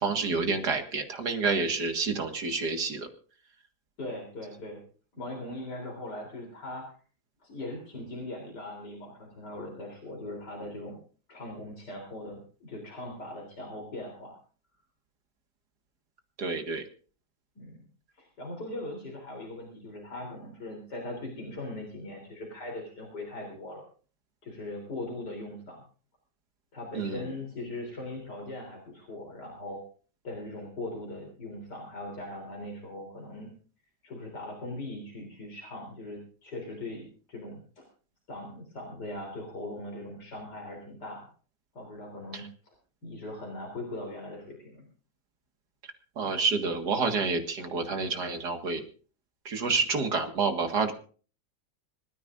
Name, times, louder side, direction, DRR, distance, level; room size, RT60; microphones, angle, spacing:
voice 1, 0.0-3.1 16.4-16.8 26.9-27.2 46.2-48.8 49.5-50.9, right 4 dB, 80° right, 5 dB, 2.4 m, -28 dB
voice 2, 4.0-4.8 5.1-6.9 7.4-11.0 11.3-14.4 17.6-17.8 18.1-23.8 24.4-25.8 26.7-29.8 30.2-33.5 34.0-37.8 38.3-41.3 41.7-42.7 43.0-44.9, left 1 dB, 85° left, 0 dB, 4.2 m, -40 dB
25.5 x 14.0 x 2.6 m, 0.40 s
omnidirectional pair, 1.7 m